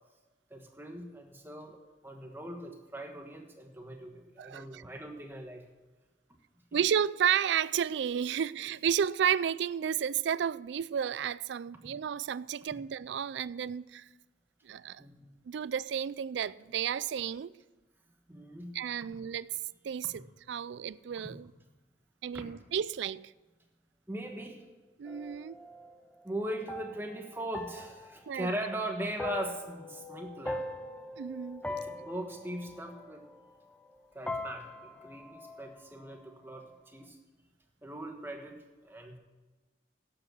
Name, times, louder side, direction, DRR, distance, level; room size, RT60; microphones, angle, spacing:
voice 1, 0.5-5.6 15.0-15.3 18.3-18.7 22.3-22.4 24.1-24.6 26.2-30.7 31.7-33.2 34.1-36.6 36.9-37.2 37.8-38.6 38.8-39.2, right 1 dB, 10° right, 1.2 m, -40 dB
voice 2, 4.4-4.8 6.7-14.1 14.6-15.0 15.5-17.5 18.7-19.6 19.8-21.5 22.2-23.3 25.0-25.6 28.3-28.5 31.2-31.6, right 8 dB, 70° right, 0.3 m, -32 dB
sound 1, 25.1-34.0 34.3-36.3, left 2 dB, 5° left, 0.5 m, -42 dB
11.5 x 8.0 x 6.2 m
head